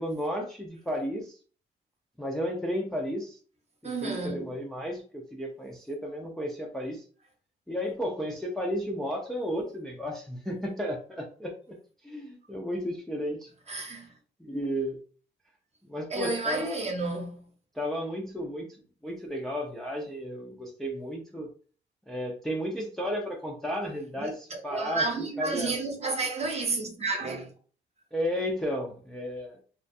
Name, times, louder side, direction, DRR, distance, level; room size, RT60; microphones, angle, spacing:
voice 1, 0.0-1.4 2.2-3.4 3.8-7.0 7.7-11.8 12.0-13.5 13.9-14.0 14.4-15.0 15.9-16.8 17.7-18.7 19.0-21.5 22.1-25.7 28.1-29.6, equal, ahead, 0.4 m, -33 dB
voice 2, 3.8-4.4 13.7-14.1 16.1-17.4 24.2-27.5, right 3 dB, 35° right, 0.7 m, -31 dB
2.4 x 2.2 x 2.6 m
cardioid pair, 90°, 20 cm